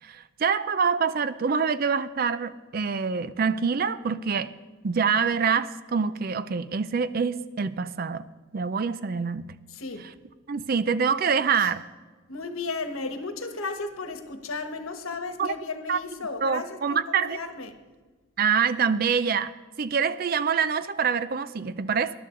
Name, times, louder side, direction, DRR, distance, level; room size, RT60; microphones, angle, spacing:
voice 1, 0.0-4.5 4.8-8.2 8.5-9.5 10.5-11.8 15.4-15.5 15.9-16.0 16.4-17.4 18.4-19.5 19.8-22.1, right 6 dB, 45° right, 14 dB, 0.4 m, -25 dB
voice 2, 9.7-10.2 11.6-11.7 12.3-17.8, left 3 dB, 85° left, 8 dB, 1.2 m, -34 dB
20.5 x 11.0 x 3.8 m, 1.4 s
head